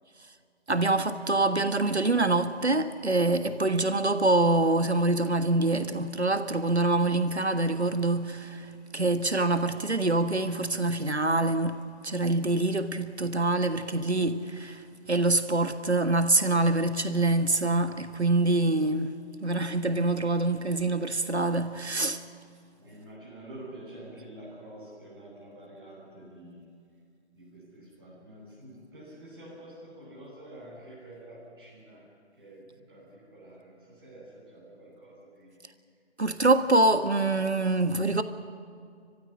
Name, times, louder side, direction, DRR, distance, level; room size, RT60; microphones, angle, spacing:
voice 1, 0.7-8.7 8.9-14.8 15.1-19.1 19.4-22.2 36.2-38.2, right 2 dB, 75° right, 1.6 m, -25 dB
voice 2, 22.8-26.7 27.3-32.0 32.3-35.6, right 1 dB, 20° right, 6.2 m, -48 dB
25.5 x 15.5 x 9.9 m
figure-of-eight pair, 160°, 34 cm